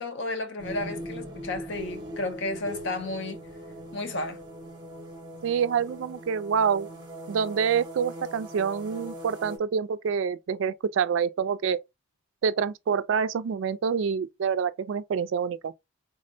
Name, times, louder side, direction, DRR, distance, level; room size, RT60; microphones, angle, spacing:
voice 1, 0.0-3.4 3.9-4.4, left 2 dB, 60° left, 0.6 m, -32 dB
sound 1, 0.6-9.6, equal, 20° right, 0.7 m, -40 dB
voice 2, 5.4-6.9 7.3-11.8 12.4-15.7, right 6 dB, 65° right, 0.3 m, -27 dB
3.5 x 2.1 x 2.6 m
head